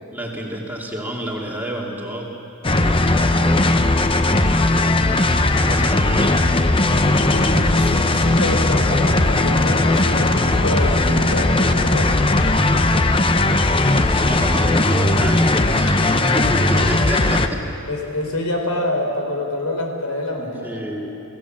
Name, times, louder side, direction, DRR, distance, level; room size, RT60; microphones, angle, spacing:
voice 1, 0.1-2.3 2.8-3.8 5.6-6.4 14.0-17.6 20.4-21.1, right 1 dB, 10° right, -2 dB, 2.5 m, -29 dB
sound 1, 2.6-17.5, left 2 dB, 25° left, 0.8 m, -17 dB
voice 2, 7.3-12.3 16.2-16.7 17.9-20.8, left 1 dB, 85° left, 3 dB, 3.9 m, -27 dB
28.5 x 16.5 x 7.5 m, 2.9 s
head